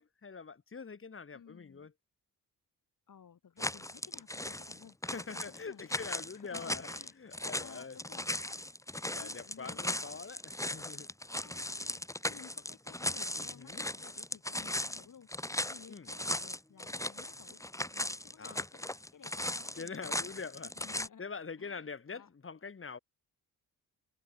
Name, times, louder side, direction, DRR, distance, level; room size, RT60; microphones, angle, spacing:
voice 1, 0.0-1.9 5.0-6.9 7.2-8.0 9.1-11.1 13.4-13.8 15.9-16.1 18.4-18.6 19.7-20.7 21.2-23.0, left 5 dB, 35° left, 2.0 m, -44 dB
voice 2, 1.3-1.9 3.1-5.0 5.3-7.3 7.6-8.3 9.2-10.0 11.4-17.6 17.9-20.2 20.8-21.3 21.6-22.3, left 7 dB, 60° left, 4.0 m, -56 dB
sound 1, 3.6-21.1, left 1 dB, 10° left, 2.2 m, -38 dB
cardioid pair, 90°, 35 cm